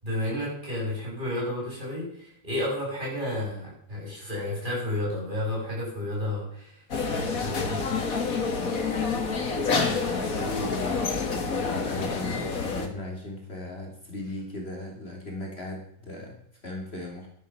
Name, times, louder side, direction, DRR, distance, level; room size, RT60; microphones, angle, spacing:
voice 1, 0.0-6.8 7.1-7.8, left 1 dB, 30° right, -4 dB, 8.0 m, -31 dB
sound 1, 6.9-12.9, left 4 dB, 65° left, 2.2 m, -28 dB
voice 2, 9.7-17.3, left 2 dB, 40° left, 0 dB, 3.2 m, -37 dB
14.5 x 10.5 x 5.9 m, 0.68 s
omnidirectional pair, 1.6 m